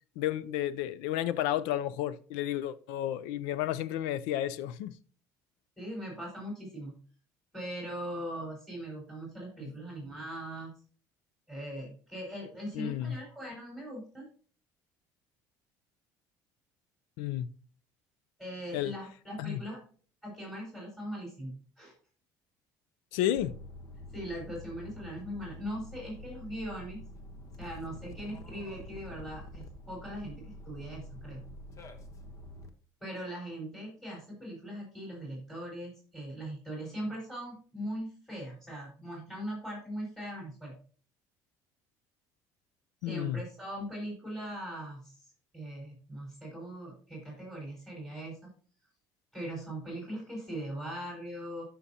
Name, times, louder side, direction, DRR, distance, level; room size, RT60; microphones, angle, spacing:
voice 1, 0.2-5.0 9.6-9.7 12.7-13.2 17.2-17.5 18.7-18.9 19.4-19.6 23.1-23.6 43.0-43.4, left 12 dB, 90° left, 0.5 m, -32 dB
voice 2, 5.8-7.0 7.5-10.7 11.5-14.3 18.4-19.8 20.2-21.9 24.1-27.0 27.6-31.4 33.0-40.8 43.1-48.5 49.3-51.6, right 1 dB, 5° left, 4.5 m, -40 dB
sound 1, 23.4-32.7, left 1 dB, 40° left, 1.1 m, -47 dB
13.5 x 5.8 x 2.8 m
cardioid pair, 110°, 8 cm